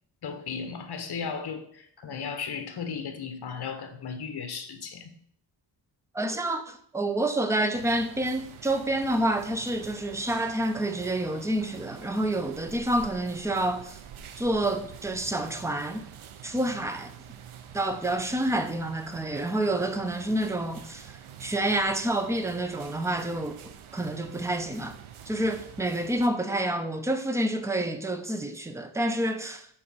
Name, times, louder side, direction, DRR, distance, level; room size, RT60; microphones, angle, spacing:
voice 1, 0.2-5.1, left 6 dB, 55° left, 1.0 m, -35 dB
voice 2, 6.1-14.0 14.4-16.1 16.4-17.1 17.7-25.0 25.3-29.7, right 1 dB, 5° right, 0.5 m, -28 dB
sound 1, 7.7-26.3, right 9 dB, 85° right, 0.8 m, -47 dB
6.2 x 4.3 x 6.1 m
wide cardioid pair, 155°, 47 cm